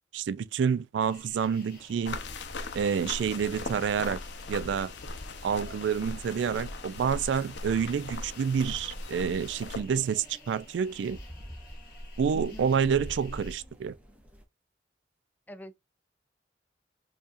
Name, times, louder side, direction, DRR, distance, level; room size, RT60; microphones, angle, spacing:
voice 1, 0.1-2.2 2.7-4.2 4.5-4.9 5.4-11.2 12.2-13.9, right 7 dB, 85° right, 0.3 m, -28 dB
sound 1, 1.0-13.6, left 1 dB, 55° left, 1.5 m, -47 dB
sound 2, 1.6-14.5, equal, 5° right, 0.7 m, -53 dB
sound 3, 2.1-9.8, left 3 dB, 80° left, 0.7 m, -39 dB
voice 2, 12.3-12.7 15.5-15.8, equal, 10° left, 0.4 m, -44 dB
4.6 x 2.8 x 2.5 m
head